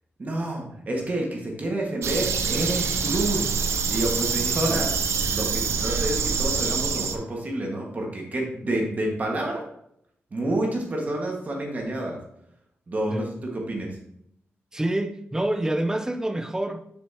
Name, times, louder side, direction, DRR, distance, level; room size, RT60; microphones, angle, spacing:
voice 1, 0.2-9.6 10.3-12.2 12.9-14.0, right 1 dB, 35° right, 1.8 m, -29 dB
sound 1, 2.0-7.2, right 5 dB, 85° right, 0.6 m, -25 dB
voice 2, 14.7-16.8, right 1 dB, 15° right, 0.6 m, -27 dB
7.7 x 6.1 x 3.0 m
wide cardioid pair, 125°, 5 cm